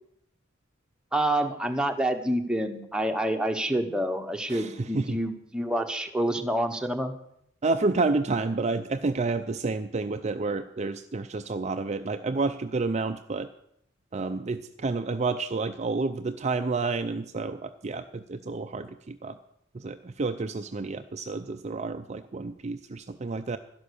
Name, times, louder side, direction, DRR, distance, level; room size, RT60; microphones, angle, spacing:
voice 1, 1.1-7.1, right 1 dB, 5° right, 5 dB, 1.1 m, -27 dB
voice 2, 4.5-5.2 7.6-13.5 14.1-19.4 19.7-23.6, right 3 dB, 35° right, 8 dB, 0.5 m, -30 dB
12.0 x 11.0 x 6.9 m, 0.72 s
head